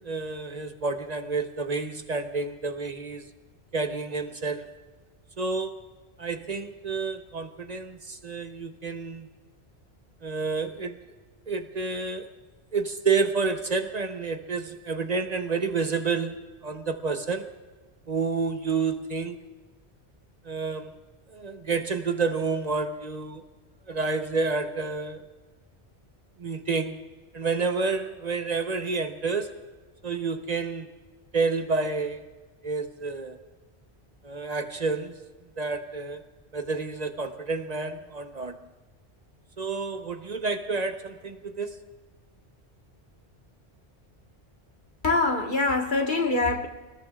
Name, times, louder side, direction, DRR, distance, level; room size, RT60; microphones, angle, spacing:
voice 1, 0.0-3.3 3.7-4.7 5.4-5.9 6.2-9.3 10.2-11.0 11.5-12.3 12.7-17.5 18.1-19.4 20.4-21.0 21.3-23.4 23.9-25.2 26.4-27.0 27.3-29.6 30.0-30.9 31.3-32.3 32.6-33.4 34.2-35.2 35.6-36.2 36.5-38.6 39.6-41.8, right 4 dB, 40° right, 1.0 m, -29 dB
voice 2, 45.0-46.7, left 3 dB, 50° left, 1.7 m, -24 dB
28.5 x 20.0 x 2.4 m
omnidirectional pair, 1.1 m